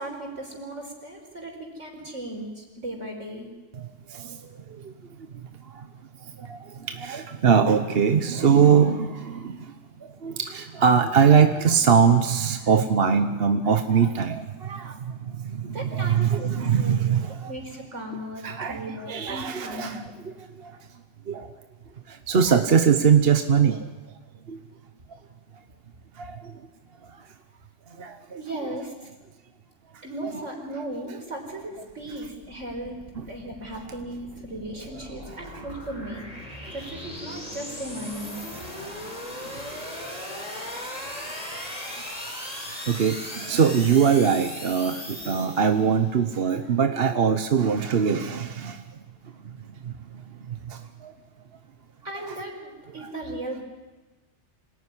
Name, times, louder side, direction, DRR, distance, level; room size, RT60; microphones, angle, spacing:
voice 1, 0.0-3.5 15.6-16.5 16.8-17.0 17.5-20.2 28.4-28.9 30.0-33.0 33.3-38.4 52.0-53.6, right 1 dB, 80° right, 5.3 m, -36 dB
voice 2, 3.7-4.4 4.7-4.9 6.4-9.7 10.2-17.5 18.4-20.1 20.6-20.7 21.3-21.5 22.1-23.9 24.5-24.6 26.2-26.5 28.0-28.2 30.2-30.3 33.2-33.3 42.5-48.8 49.9-50.0 50.5-51.1 52.2-52.3, right 7 dB, 55° right, 1.2 m, -22 dB
sound 1, 31.5-46.1, left 1 dB, 30° left, 5.0 m, -38 dB
26.5 x 18.5 x 9.9 m
omnidirectional pair, 1.2 m